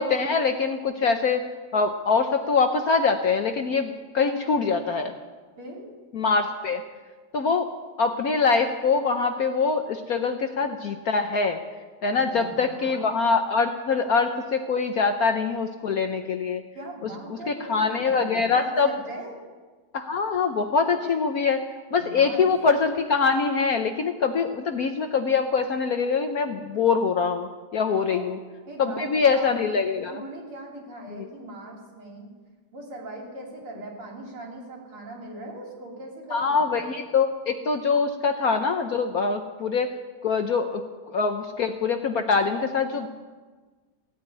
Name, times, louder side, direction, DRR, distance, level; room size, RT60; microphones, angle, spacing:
voice 1, 0.0-5.1 6.1-6.8 7.3-7.7 8.0-11.6 12.0-16.6 17.3-18.9 19.9-21.6 21.9-28.4 28.8-30.2 31.1-31.3 36.3-39.9 40.2-43.1, left 5 dB, 60° left, 6 dB, 1.0 m, -24 dB
voice 2, 5.6-5.9 12.1-13.0 16.7-19.3 22.0-22.5 28.1-28.3 28.7-29.7 30.1-32.3 32.7-36.8, right 1 dB, 85° right, -1 dB, 4.4 m, -40 dB
16.5 x 8.8 x 9.6 m, 1.4 s
omnidirectional pair, 2.4 m